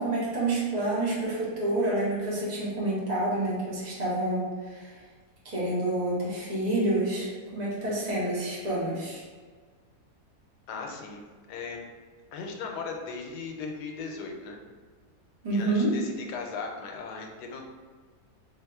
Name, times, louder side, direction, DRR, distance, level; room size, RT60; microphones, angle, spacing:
voice 1, 0.0-4.9 5.4-9.2 15.4-16.0, right 2 dB, 30° right, -7 dB, 1.0 m, -28 dB
voice 2, 10.7-11.2 11.5-11.8 12.3-14.6 15.5-17.7, left 4 dB, 85° left, 2 dB, 1.2 m, -37 dB
3.5 x 2.8 x 3.4 m, 1.5 s
omnidirectional pair, 1.7 m